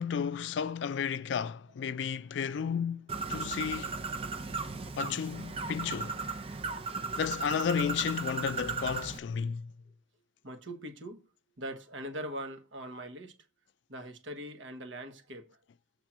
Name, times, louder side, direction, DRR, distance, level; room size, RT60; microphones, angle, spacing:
voice 1, 0.0-3.9 5.0-6.2 7.2-9.7, left 7 dB, 60° left, 0.3 m, -33 dB
Bird, 3.1-9.2, right 4 dB, 30° right, 0.6 m, -36 dB
voice 2, 10.4-11.2 11.6-13.3 13.9-15.6, right 1 dB, 70° right, 1.3 m, -41 dB
7.4 x 3.6 x 5.9 m
head